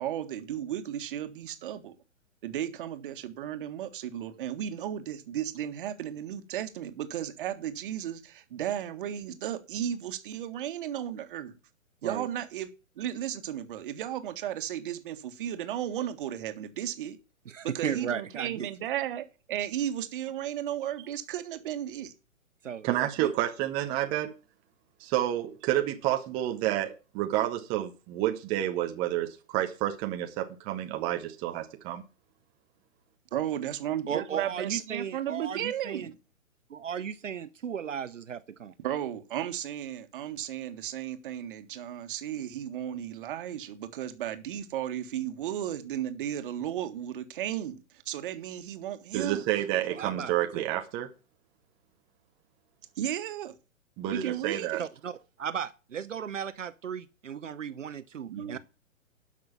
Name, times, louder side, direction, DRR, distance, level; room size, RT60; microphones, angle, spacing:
voice 1, 0.0-1.9 2.4-11.6 12.0-12.7 13.0-17.2 17.7-22.1 33.3-36.2 38.8-49.4 53.0-53.5 54.1-54.8 58.3-58.6, right 10 dB, 40° right, 1.6 m, -34 dB
voice 2, 17.5-18.7 22.6-23.3 34.1-36.1 36.7-38.7 49.9-50.6 54.8-58.6, right 8 dB, 65° right, 0.8 m, -36 dB
voice 3, 22.8-24.3 25.0-32.0 49.1-51.1 54.0-54.8, right 13 dB, 15° right, 0.6 m, -29 dB
12.5 x 6.1 x 7.1 m
figure-of-eight pair, 125°, 40 cm